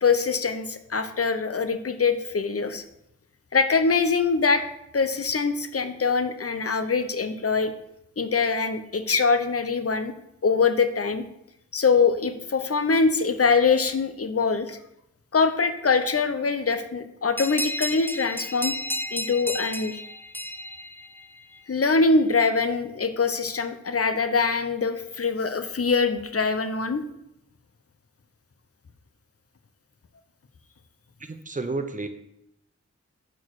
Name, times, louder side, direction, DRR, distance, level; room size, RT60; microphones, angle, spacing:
voice 1, 0.0-2.8 3.5-4.6 4.9-7.7 8.2-10.1 10.4-11.2 11.7-14.8 15.3-18.7 19.1-20.0 21.7-27.0, left 4 dB, 55° left, 9 dB, 0.7 m, -23 dB
sound 1, 17.4-21.6, left 1 dB, 10° left, 0.4 m, -32 dB
voice 2, 31.2-32.1, right 3 dB, 25° right, 8 dB, 0.7 m, -31 dB
6.2 x 4.5 x 4.7 m, 0.80 s
wide cardioid pair, 45°, 29 cm